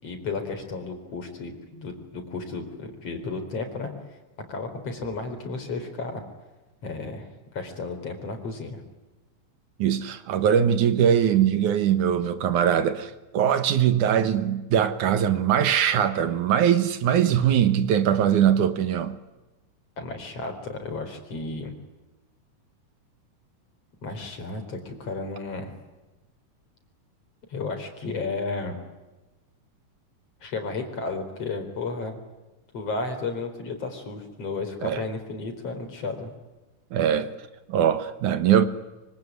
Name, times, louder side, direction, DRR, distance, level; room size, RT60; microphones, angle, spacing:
voice 1, 0.0-3.9 4.5-6.2 6.8-7.3 7.5-8.8 20.0-21.7 24.0-25.7 27.5-28.8 30.4-32.1 32.7-36.3, left 3 dB, 50° left, 5.2 m, -33 dB
voice 2, 9.8-19.2 34.8-35.0 36.9-37.3 37.7-38.7, right 9 dB, 75° right, 2.8 m, -21 dB
25.0 x 25.0 x 9.6 m
omnidirectional pair, 3.6 m